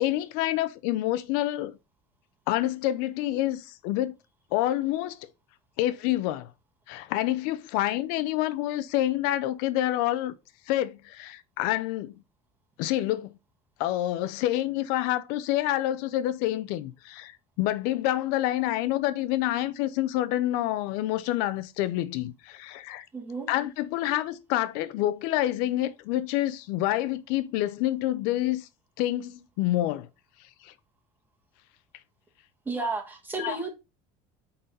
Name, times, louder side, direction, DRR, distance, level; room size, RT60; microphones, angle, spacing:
voice 1, 0.0-1.7 2.5-4.1 4.5-5.2 5.8-6.5 6.9-10.3 10.7-12.1 12.8-13.3 13.8-17.3 17.6-23.1 23.5-28.7 29.0-30.1 30.6-30.7 33.4-33.6, left 14 dB, 80° left, 0.7 m, -27 dB
voice 2, 23.1-23.5 32.6-33.7, right 3 dB, 10° right, 1.6 m, -32 dB
9.3 x 4.0 x 4.1 m
cardioid pair, 165°, 15 cm